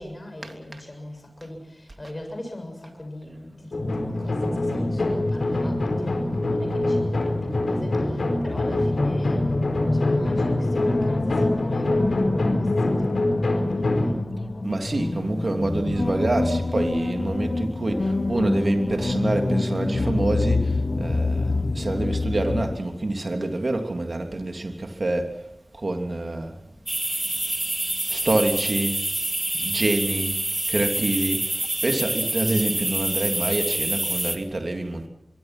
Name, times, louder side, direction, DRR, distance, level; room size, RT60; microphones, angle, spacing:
voice 1, 0.0-9.4 9.9-14.2 14.6-15.1 27.3-28.2, left 1 dB, 30° left, 4 dB, 7.2 m, -40 dB
sound 1, 3.7-14.1, left 2 dB, 80° left, 4.5 m, -25 dB
sound 2, 3.8-22.8, left 2 dB, 45° left, 1.2 m, -28 dB
voice 2, 14.6-25.4 25.8-26.5 28.1-29.0 29.6-30.3 30.7-31.4 31.8-35.1, right 2 dB, 55° right, 4 dB, 3.0 m, -26 dB
sound 3, 26.9-34.4, right 1 dB, 25° right, 2.1 m, -27 dB
24.0 x 24.0 x 6.1 m, 0.84 s
wide cardioid pair, 75°, 0 cm